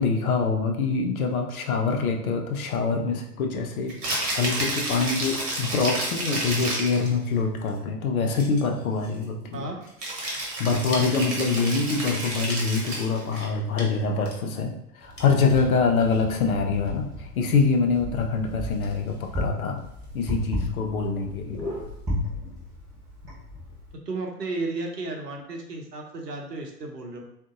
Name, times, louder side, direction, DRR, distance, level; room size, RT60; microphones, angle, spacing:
voice 1, 0.0-3.9 4.3-9.7 10.6-19.8 20.1-21.7, left 4 dB, 60° left, 3 dB, 0.6 m, -25 dB
Rattle (instrument), 3.9-7.1 10.0-13.2, right 1 dB, 50° right, 1.1 m, -30 dB
sound 1, 6.8-22.1, left 1 dB, 80° left, 1.0 m, -43 dB
Wind, 15.0-23.9, left 1 dB, 10° right, 0.5 m, -34 dB
voice 2, 24.1-27.2, right 3 dB, 75° right, 2 dB, 0.8 m, -33 dB
3.6 x 2.6 x 2.4 m, 0.78 s
figure-of-eight pair, 95°, 49 cm